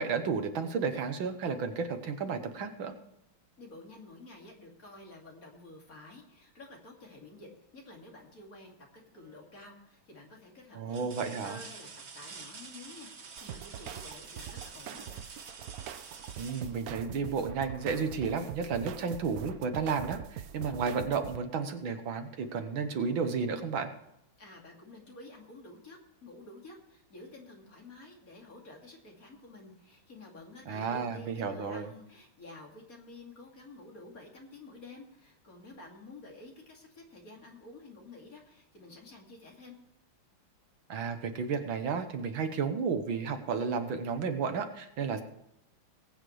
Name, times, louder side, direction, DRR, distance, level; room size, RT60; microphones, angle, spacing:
voice 1, 0.0-2.9 10.7-11.6 16.4-23.9 30.7-31.9 40.9-45.2, right 5 dB, 70° right, 7 dB, 1.9 m, -32 dB
voice 2, 3.6-11.9 12.1-15.2 24.4-39.8, left 2 dB, 40° left, 0 dB, 2.9 m, -51 dB
sound 1, 9.1-9.6 10.2-10.3 10.9-17.6 19.4-19.5 20.0-21.0 22.3-22.4, right 5 dB, 40° right, 1.1 m, -49 dB
sound 2, 13.4-21.4, right 10 dB, 85° right, 0.8 m, -43 dB
20.0 x 8.9 x 3.2 m, 0.83 s
omnidirectional pair, 2.3 m